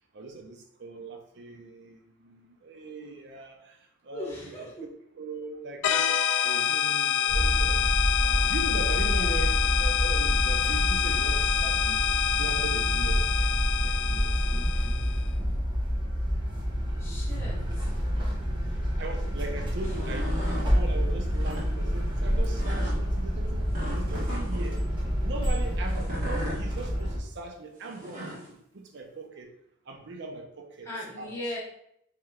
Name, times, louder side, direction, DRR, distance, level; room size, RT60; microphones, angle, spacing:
voice 1, 0.1-3.8 4.0-4.9 5.1-6.2 6.4-7.9 8.5-12.0 12.4-14.3 19.0-23.6 23.9-24.8 25.2-29.5 29.9-30.9 31.2-31.4, right 3 dB, 60° right, 4 dB, 0.5 m, -40 dB
voice 2, 4.1-4.8 9.0-9.4 17.0-17.9 19.8-19.9 30.8-31.6, left 1 dB, 15° left, -5 dB, 1.2 m, -39 dB
sound 1, 5.8-15.2, left 10 dB, 65° left, 0.3 m, -27 dB
sound 2, 7.3-27.2, equal, 25° right, 0.9 m, -28 dB
sound 3, 19.8-20.7 21.3-21.7 22.6-23.0 23.7-24.7 25.9-26.6 27.8-28.5, equal, 40° right, 1.3 m, -37 dB
4.8 x 3.1 x 2.3 m, 0.74 s
head